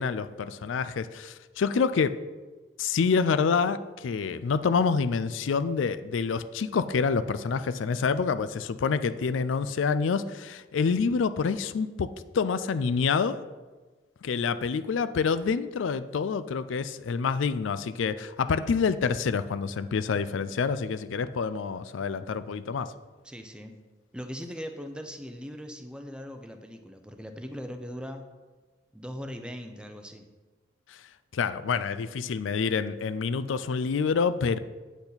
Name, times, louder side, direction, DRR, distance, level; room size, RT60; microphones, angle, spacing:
voice 1, 0.0-2.2 2.8-13.4 14.2-22.9 30.9-31.0 31.3-34.6, left 5 dB, 75° left, 13 dB, 0.4 m, -27 dB
voice 2, 23.2-23.7 24.1-28.2 28.9-30.3, equal, 5° right, 6 dB, 0.6 m, -40 dB
8.6 x 8.2 x 4.0 m, 1.3 s
head